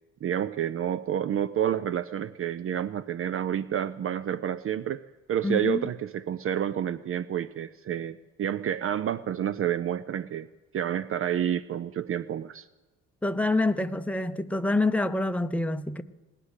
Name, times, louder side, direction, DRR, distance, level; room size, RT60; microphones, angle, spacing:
voice 1, 0.2-5.0 5.3-10.5 10.7-12.7, right 10 dB, 45° right, 0.5 m, -29 dB
voice 2, 5.4-5.8 13.2-16.0, left 2 dB, 5° left, 0.7 m, -26 dB
18.0 x 9.8 x 8.2 m
cardioid pair, 90°, 30 cm